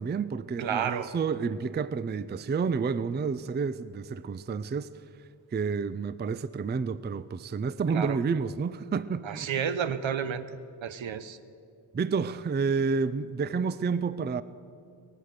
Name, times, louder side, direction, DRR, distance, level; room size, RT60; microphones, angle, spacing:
voice 1, 0.0-4.9 5.5-9.5 11.9-14.4, right 5 dB, 20° right, 0.4 m, -30 dB
voice 2, 0.6-1.1 7.9-8.2 9.2-10.5 10.8-11.4, right 8 dB, 70° right, 0.9 m, -31 dB
22.0 x 8.1 x 6.6 m
cardioid pair, 45°, 49 cm